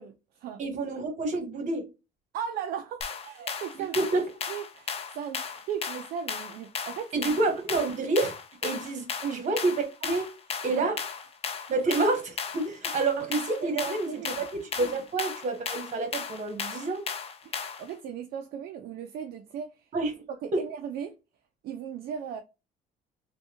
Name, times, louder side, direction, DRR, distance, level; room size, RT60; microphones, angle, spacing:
voice 1, 0.0-0.6 2.3-4.1 4.5-7.2 9.2-9.4 10.7-11.0 13.6-14.4 17.4-19.9 20.3-21.1 21.6-22.4, right 8 dB, 65° right, 0.4 m, -37 dB
voice 2, 0.6-1.9 3.8-4.2 7.1-8.3 8.6-10.3 10.6-10.9 11.7-17.0 19.9-20.2 20.5-20.6, right 3 dB, 45° right, 1.1 m, -28 dB
sound 1, 3.0-17.9, left 6 dB, 35° left, 0.5 m, -36 dB
3.2 x 2.3 x 2.9 m
cardioid pair, 110°, 17 cm